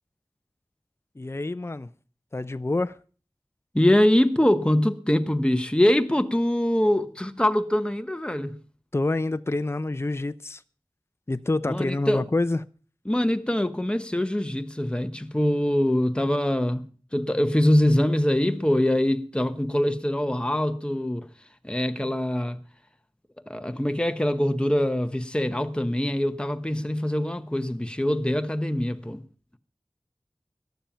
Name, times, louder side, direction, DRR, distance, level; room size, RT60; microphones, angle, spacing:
voice 1, 1.2-1.9 2.3-3.0 8.9-10.6 11.3-12.6, left 2 dB, 30° left, 0.5 m, -27 dB
voice 2, 3.7-8.6 11.7-12.2 13.1-16.9 17.1-21.3 21.6-22.6 23.5-29.2, left 1 dB, 10° left, 0.9 m, -23 dB
14.5 x 10.5 x 5.7 m
wide cardioid pair, 55°, 9 cm